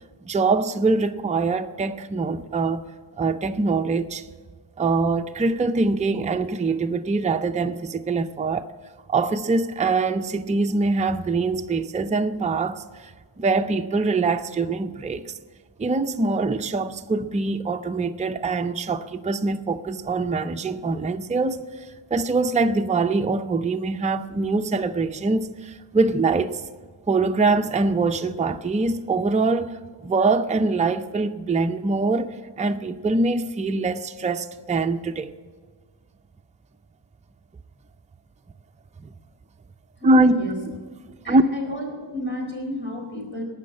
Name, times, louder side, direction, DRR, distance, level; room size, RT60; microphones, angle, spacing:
voice 1, 0.2-2.8 3.2-4.3 4.8-8.7 9.1-15.2 15.8-26.6 27.1-35.3 39.0-39.1 40.0-40.4 41.3-41.4, right 3 dB, 15° right, 0.5 m, -23 dB
voice 2, 40.0-40.5 41.2-43.4, left 1 dB, 25° left, 4.2 m, -31 dB
18.0 x 6.3 x 8.7 m
wide cardioid pair, 95°, 47 cm